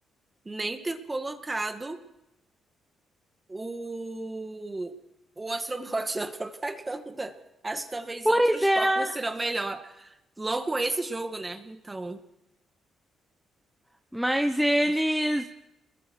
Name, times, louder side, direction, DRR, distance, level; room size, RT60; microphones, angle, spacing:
voice 1, 0.5-2.0 3.5-4.9 5.4-7.4 7.6-12.2, right 2 dB, 20° right, 7 dB, 2.0 m, -33 dB
voice 2, 8.2-9.1 14.1-15.5, equal, ahead, 6 dB, 1.0 m, -23 dB
28.5 x 21.5 x 4.8 m, 0.88 s
cardioid pair, 90°, 0 cm